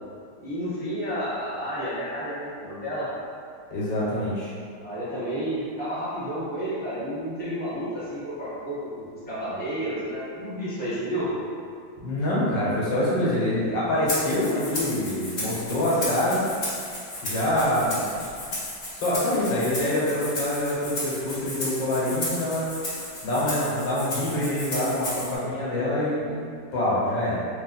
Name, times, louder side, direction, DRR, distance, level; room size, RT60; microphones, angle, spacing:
voice 1, 0.4-3.1 4.8-11.3, equal, 5° left, -12 dB, 0.9 m, -31 dB
voice 2, 3.7-4.5 12.0-16.4 17.2-18.1 18.9-22.7 23.0-26.4 26.7-27.4, left 1 dB, 80° left, -7 dB, 1.7 m, -25 dB
Rattle (instrument), 14.1-25.4, left 1 dB, 45° left, 1.0 m, -34 dB
3.5 x 2.5 x 3.9 m, 2.3 s
omnidirectional pair, 1.9 m